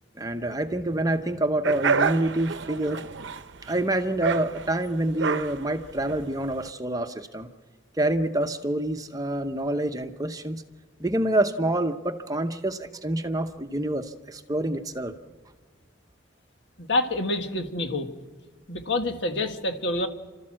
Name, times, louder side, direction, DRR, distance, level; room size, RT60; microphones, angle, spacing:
voice 1, 0.2-3.0 3.7-7.5 8.0-10.6 11.0-15.1, right 1 dB, 20° right, 7 dB, 0.8 m, -27 dB
sound 1, 1.6-6.7, right 5 dB, 70° right, 0.7 m, -29 dB
voice 2, 16.8-18.1 18.7-20.1, left 2 dB, 70° left, 5 dB, 1.7 m, -27 dB
29.5 x 13.0 x 7.5 m, 1.5 s
head